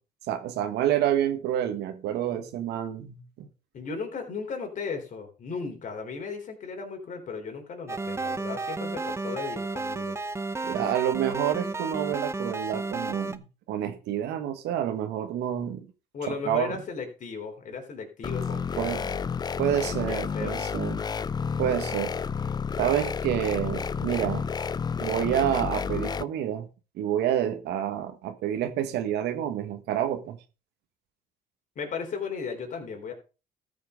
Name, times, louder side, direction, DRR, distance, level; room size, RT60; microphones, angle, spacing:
voice 1, 0.3-3.5 10.6-15.9 16.3-16.8 18.8-19.1 19.6-21.0 21.6-22.2 22.8-24.5 25.0-26.7 26.9-30.4, right 11 dB, 85° right, 1.4 m, -28 dB
voice 2, 3.7-10.2 16.1-19.2 19.8-20.7 31.8-33.1, left 5 dB, 50° left, 3.8 m, -36 dB
sound 1, 7.9-13.4, right 3 dB, 15° right, 0.8 m, -32 dB
sound 2, 18.2-26.2, left 6 dB, 25° left, 0.4 m, -31 dB
13.5 x 5.9 x 5.1 m
cardioid pair, 110°, 17 cm